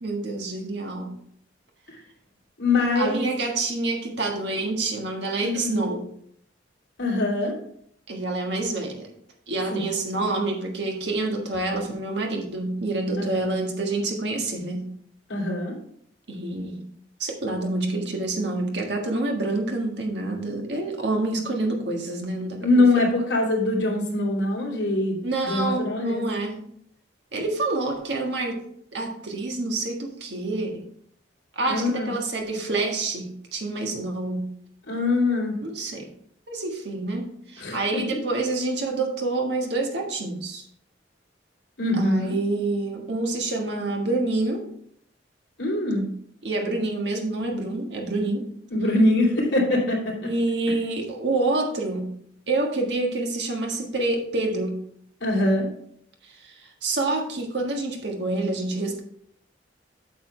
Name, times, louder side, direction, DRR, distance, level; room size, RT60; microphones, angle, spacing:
voice 1, 0.0-1.2 2.9-6.1 8.1-9.1 9.5-14.9 16.3-16.8 17.2-22.6 22.9-23.1 25.2-26.6 27.3-30.9 31.5-34.5 35.6-36.1 36.5-40.7 41.9-44.7 46.4-48.5 50.2-52.1 52.5-54.8 56.2-59.0, right 2 dB, 65° right, 1 dB, 1.6 m, -27 dB
voice 2, 2.6-3.3 5.4-5.7 7.0-7.6 9.7-9.9 13.2-13.4 15.3-15.7 22.6-26.2 31.7-32.1 34.9-35.6 37.6-38.2 41.8-42.3 45.6-46.1 48.7-50.3 55.2-55.7, left 2 dB, 65° left, -2 dB, 3.0 m, -23 dB
8.4 x 6.9 x 3.3 m, 0.67 s
head